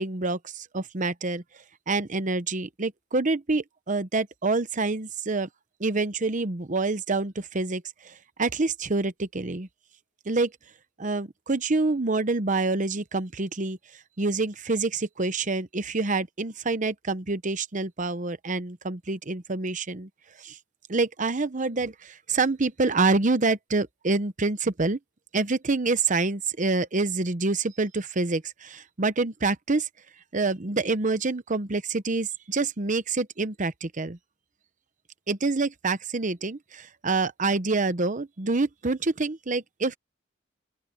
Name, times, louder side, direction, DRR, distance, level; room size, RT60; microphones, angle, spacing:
voice 1, 0.0-1.4 1.9-5.5 5.8-9.7 10.3-10.5 11.0-13.8 14.2-20.1 20.4-20.6 20.9-25.0 25.3-29.9 30.3-34.2 35.3-40.0, right 3 dB, 40° right, 0.9 m, -27 dB
open air
head